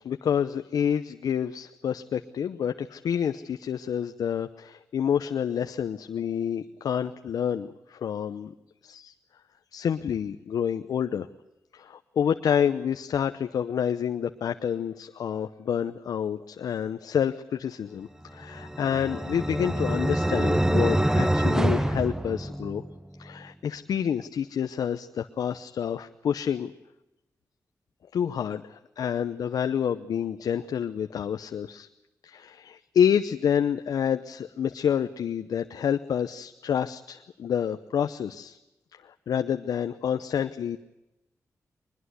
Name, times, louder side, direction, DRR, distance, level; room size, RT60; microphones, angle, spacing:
voice 1, 0.0-8.5 8.8-9.1 9.7-11.3 11.7-22.8 23.2-26.7 28.1-31.9 32.2-38.6 39.0-40.8, left 8 dB, 85° left, 9 dB, 0.8 m, -28 dB
sound 1, 18.4-23.0, right 1 dB, 10° right, 0.9 m, -25 dB
22.5 x 21.0 x 8.2 m, 0.94 s
cardioid pair, 60°, 6 cm